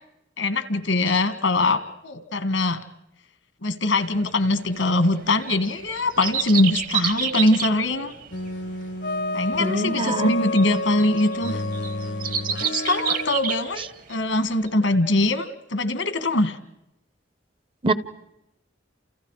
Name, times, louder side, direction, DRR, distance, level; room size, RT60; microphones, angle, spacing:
voice 1, 0.4-2.8 3.6-8.2 9.3-11.6 12.6-16.6, left 2 dB, 80° left, 11 dB, 1.9 m, -22 dB
sound 1, 4.3-14.3 14.7-14.8, right 8 dB, 45° right, 1.2 m, -29 dB
sound 2, 8.3-13.3, left 2 dB, 60° left, 1.0 m, -30 dB
voice 2, 9.6-10.3 12.6-12.7 17.8-17.9, right 2 dB, 25° right, 14 dB, 0.8 m, -24 dB
29.5 x 29.0 x 4.9 m, 0.87 s
head